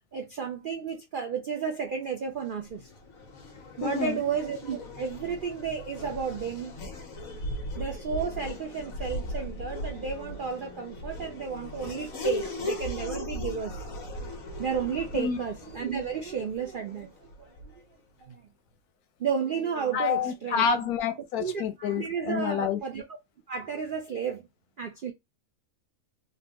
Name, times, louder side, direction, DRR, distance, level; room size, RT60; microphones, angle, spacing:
voice 1, 0.1-2.9 3.8-6.7 7.8-13.8 14.6-17.7 18.2-18.4 19.2-20.9 21.4-23.0 23.5-24.4 24.8-25.1, right 6 dB, 70° right, 0.4 m, -32 dB
Race car auto racing / Accelerating revving vroom, 2.3-17.9, left 1 dB, 70° left, 1.4 m, -38 dB
voice 2, 3.8-4.1 15.1-15.4 19.9-22.8, left 7 dB, 90° left, 1.2 m, -28 dB
3.9 x 2.2 x 2.8 m
omnidirectional pair, 1.5 m